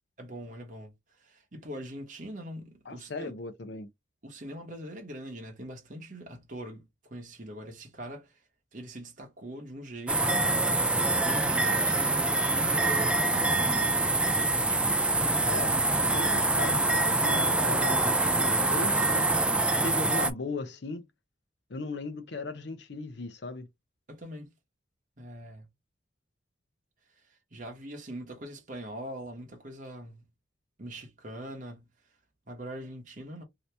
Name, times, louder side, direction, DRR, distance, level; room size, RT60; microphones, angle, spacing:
voice 1, 0.2-0.9 1.2-3.3 4.2-8.3 8.7-13.8 18.9-19.1 24.1-24.5 25.2-25.6 27.5-30.2 30.8-31.9 32.5-33.4, equal, 40° right, 0.9 m, -42 dB
voice 2, 2.9-3.9 15.5-15.7 16.0-19.3 19.6-21.1 21.7-23.7, left 3 dB, 60° left, 0.6 m, -37 dB
sound 1, 10.1-20.3, right 2 dB, 5° right, 0.3 m, -25 dB
2.8 x 2.7 x 3.3 m
head